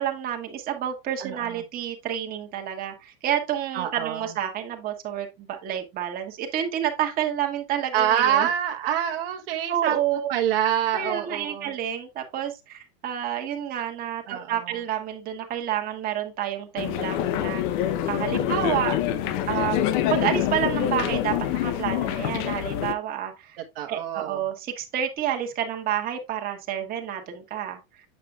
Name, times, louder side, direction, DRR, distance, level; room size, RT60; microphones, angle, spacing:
voice 1, 0.0-8.5 9.7-10.3 10.9-17.6 18.1-19.0 19.5-19.8 20.1-23.6 23.9-27.8, right 10 dB, 30° right, 1.4 m, -29 dB
voice 2, 1.2-1.6 3.7-4.3 7.9-10.0 10.3-11.7 14.3-14.8 18.5-19.5 23.7-24.5, right 10 dB, 70° right, 1.1 m, -27 dB
sound 1, 16.8-22.9, left 11 dB, 50° left, 0.7 m, -26 dB
7.7 x 6.0 x 2.3 m
supercardioid pair, 145°, 30 cm